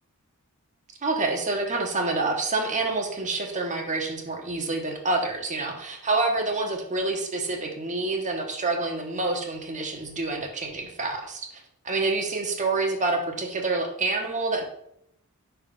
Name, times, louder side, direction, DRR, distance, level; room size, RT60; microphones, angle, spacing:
voice 1, 1.0-14.6, right 3 dB, 35° right, 2 dB, 1.1 m, -27 dB
5.4 x 3.5 x 5.3 m, 0.75 s
head